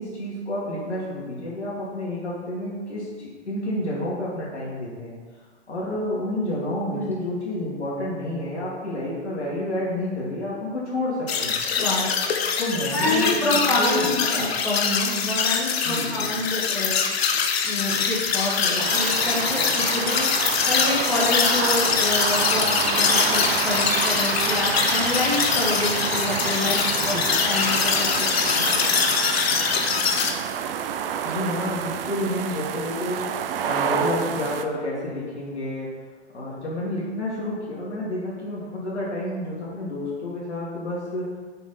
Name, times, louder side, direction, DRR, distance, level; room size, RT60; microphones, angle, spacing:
voice 1, 0.0-5.1 5.7-11.6 12.6-14.5 15.8-16.3 27.0-27.2 31.2-33.3 33.6-35.9 36.3-41.3, left 1 dB, 85° left, -6 dB, 2.4 m, -29 dB
sound 1, 11.3-30.3, left 6 dB, 65° left, 1.0 m, -23 dB
voice 2, 11.8-12.1 12.9-17.0 17.6-29.0, left 2 dB, 5° left, -5 dB, 1.9 m, -27 dB
sound 2, 18.8-34.6, right 8 dB, 55° right, 0.6 m, -28 dB
7.0 x 5.9 x 4.4 m, 1.4 s
hypercardioid pair, 115°, 34 cm